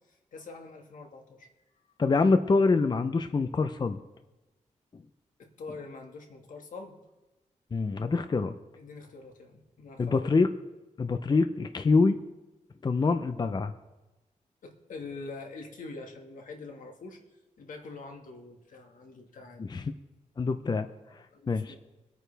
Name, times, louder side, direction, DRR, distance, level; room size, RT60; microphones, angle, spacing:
voice 1, 0.3-1.5 5.4-7.0 8.8-10.4 14.6-17.2 17.6-19.6 21.3-21.8, left 3 dB, 80° left, 3 dB, 1.8 m, -44 dB
voice 2, 2.0-4.0 7.7-8.5 10.0-10.5 11.0-12.2 12.8-13.7 19.6-19.8 20.4-20.9 21.5-21.8, left 4 dB, 35° left, 9 dB, 0.6 m, -25 dB
23.5 x 9.2 x 3.4 m, 1.1 s
wide cardioid pair, 105°, 13 cm